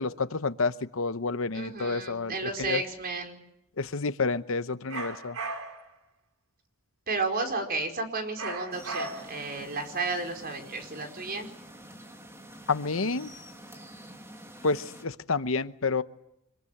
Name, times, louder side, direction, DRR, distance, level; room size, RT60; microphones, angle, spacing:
voice 1, 0.0-2.8 3.8-5.4 12.7-13.3 14.6-16.0, left 4 dB, 70° left, 13 dB, 1.0 m, -29 dB
voice 2, 1.5-3.4 7.1-11.5, right 3 dB, 45° right, 4 dB, 4.9 m, -32 dB
sound 1, 4.9-5.9 8.4-9.5, right 3 dB, 85° right, 3.7 m, -36 dB
sound 2, 8.7-15.1, right 1 dB, 15° right, 2.7 m, -48 dB
25.5 x 22.5 x 10.0 m, 0.80 s
head